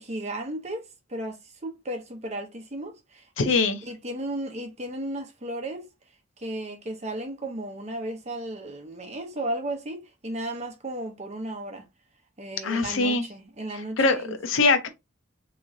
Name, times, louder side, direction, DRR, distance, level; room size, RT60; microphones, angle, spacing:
voice 1, 0.0-5.9 6.4-11.9 12.4-14.4, right 1 dB, 35° right, 0.9 m, -35 dB
voice 2, 3.4-3.8 12.6-13.2 14.0-14.9, left 3 dB, 80° left, 0.6 m, -22 dB
3.6 x 3.0 x 2.6 m
head